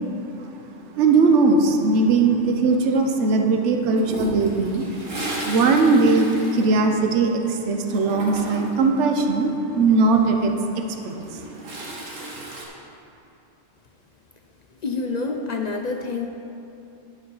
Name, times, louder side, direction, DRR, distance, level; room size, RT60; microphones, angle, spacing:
voice 1, 1.0-4.9 5.4-11.4, right 3 dB, 70° right, 4 dB, 1.1 m, -19 dB
Toilet flush, 4.0-7.4 7.7-8.9 10.9-12.7, right 1 dB, 85° right, 1.8 m, -33 dB
voice 2, 14.8-16.3, left 4 dB, 55° left, 3 dB, 0.4 m, -27 dB
10.5 x 5.7 x 5.4 m, 2.7 s
omnidirectional pair, 1.3 m